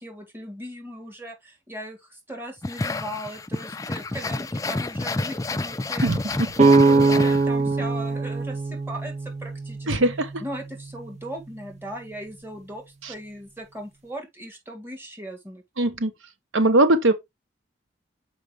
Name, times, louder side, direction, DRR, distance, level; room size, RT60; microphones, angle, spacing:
voice 1, 0.0-10.0 10.4-12.8 13.1-15.6, right 1 dB, 10° right, 1.8 m, -38 dB
sound 1, 2.6-7.8, left 2 dB, 15° left, 0.3 m, -29 dB
sound 2, 6.6-10.4, right 3 dB, 35° right, 0.6 m, -21 dB
voice 2, 9.9-10.3 15.8-16.1 16.5-17.1, right 1 dB, 80° right, 1.1 m, -19 dB
6.5 x 4.9 x 3.5 m
head